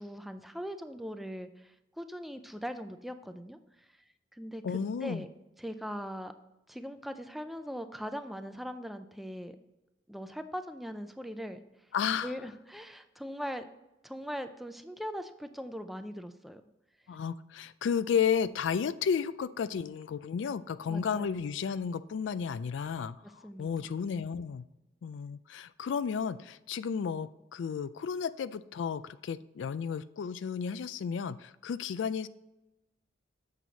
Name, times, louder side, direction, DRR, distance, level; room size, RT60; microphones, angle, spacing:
voice 1, 0.0-3.9 4.3-4.6 5.0-5.3 5.6-6.3 6.7-9.6 10.1-11.6 12.2-13.7 14.0-16.6 20.9-21.5 23.2-23.7, equal, ahead, 8 dB, 0.4 m, -40 dB
voice 2, 4.6-5.2 11.9-12.3 17.1-24.7 25.0-32.3, left 7 dB, 80° left, 15 dB, 0.3 m, -33 dB
7.5 x 6.2 x 4.0 m, 0.94 s
head